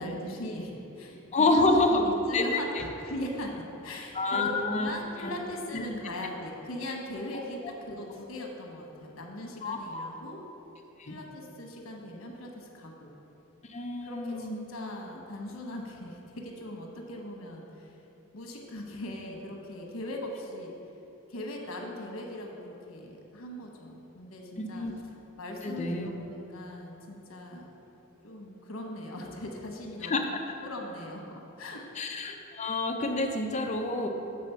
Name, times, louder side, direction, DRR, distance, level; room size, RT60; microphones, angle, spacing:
voice 1, 0.0-10.4 11.1-13.1 14.0-18.0 18.3-20.7 21.3-24.9 25.4-27.7 28.2-30.2 30.6-31.8, left 1 dB, 85° left, 1 dB, 1.1 m, -40 dB
voice 2, 1.3-2.0 2.3-2.8 4.1-4.9 5.2-5.3 5.7-5.9 9.6-10.2 11.0-11.2 13.6-14.6 24.6-24.9 25.6-26.1 30.0-30.6 31.9-34.1, left 2 dB, 35° left, 3 dB, 0.6 m, -28 dB
7.6 x 4.1 x 5.6 m, 2.9 s
head